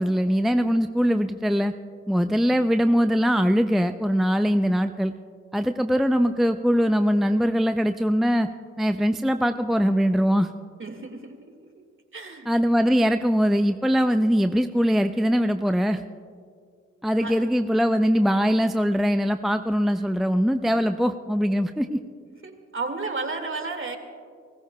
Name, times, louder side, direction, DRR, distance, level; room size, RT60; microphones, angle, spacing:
voice 1, 0.0-1.7 2.1-5.1 5.5-8.5 8.8-10.5 12.5-16.0 17.0-22.0, equal, ahead, 8 dB, 0.5 m, -22 dB
voice 2, 10.8-11.5 12.1-12.5 17.2-17.4 22.4-24.0, right 3 dB, 40° right, 5 dB, 2.1 m, -32 dB
29.5 x 15.0 x 2.3 m, 2.1 s
supercardioid pair, 45°, 33 cm